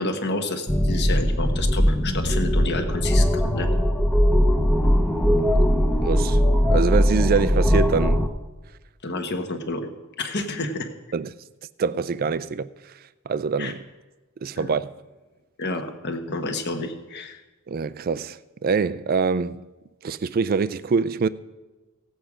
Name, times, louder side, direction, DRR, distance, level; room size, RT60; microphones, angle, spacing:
voice 1, 0.0-3.7 9.0-9.9 10.2-10.9 13.6-13.7 14.6-14.7 15.6-17.4, left 2 dB, 50° left, 1.1 m, -29 dB
sound 1, 0.7-8.3, equal, 5° left, 0.7 m, -20 dB
voice 2, 6.0-6.4 6.7-8.2 11.1-11.3 11.8-12.7 13.3-13.8 14.4-14.9 17.7-19.6 20.0-21.3, right 5 dB, 40° right, 0.3 m, -24 dB
16.5 x 7.9 x 4.9 m
head